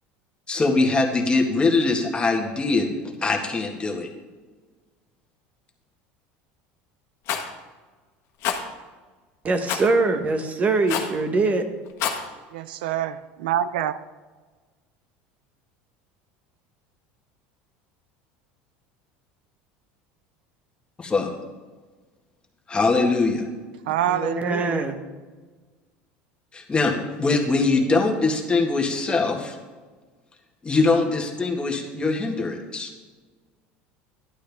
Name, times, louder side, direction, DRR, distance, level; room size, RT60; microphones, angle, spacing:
voice 1, 0.5-2.9 3.2-4.1 21.0-21.3 22.7-23.4 26.5-29.6 30.6-32.9, left 3 dB, 20° left, 2 dB, 1.7 m, -22 dB
Rattle, 7.3-7.5 8.4-8.6 9.7-9.9 10.9-11.2 11.9-12.2, left 8 dB, 60° left, 1.5 m, -26 dB
voice 2, 9.4-11.7 24.1-25.0, right 3 dB, 30° right, 7 dB, 1.2 m, -23 dB
voice 3, 12.5-14.0 23.9-24.8, right 11 dB, 90° right, 14 dB, 0.4 m, -26 dB
11.5 x 11.5 x 3.5 m, 1.4 s
supercardioid pair, 110°, 5 cm